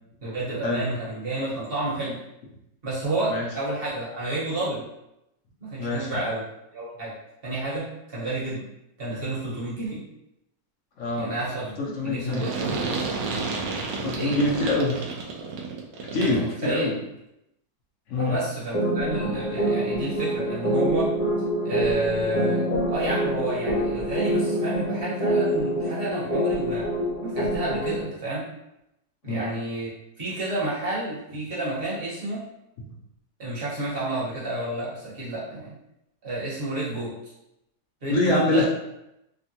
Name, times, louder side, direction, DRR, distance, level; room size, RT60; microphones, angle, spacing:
voice 1, 0.2-2.2 2.8-4.8 5.6-6.4 6.7-7.1 7.4-8.7 9.0-10.0 11.2-11.7 12.0-13.1 14.1-14.3 16.3-16.9 18.2-21.1 21.6-26.9 27.2-28.5 29.2-29.9 30.2-32.4 33.4-35.7 36.2-37.3 38.0-38.6, right 2 dB, 40° right, -8 dB, 1.2 m, -30 dB
voice 2, 5.8-6.1 11.0-11.3 11.8-12.5 14.0-15.0 16.1-16.9 18.1-18.4 29.3-29.5 32.8-32.9 38.1-38.7, left 2 dB, 65° left, -3 dB, 0.7 m, -25 dB
sound 1, 12.3-16.5, right 4 dB, 75° right, 1.1 m, -31 dB
sound 2, 18.7-28.0, right 1 dB, 30° left, 0.7 m, -26 dB
3.5 x 2.2 x 2.7 m, 0.86 s
omnidirectional pair, 1.9 m